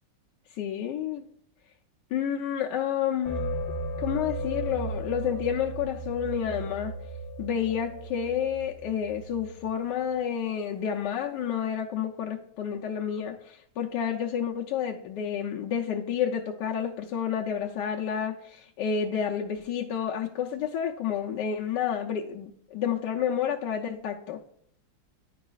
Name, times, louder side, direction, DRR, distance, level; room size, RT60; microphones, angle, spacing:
voice 1, 0.6-1.2 2.1-3.5 4.0-6.9 7.4-24.4, left 8 dB, 70° left, 1 dB, 1.1 m, -30 dB
sound 1, 3.3-9.8, equal, 55° left, 0.6 m, -35 dB
10.0 x 4.8 x 2.3 m, 0.68 s
omnidirectional pair, 2.2 m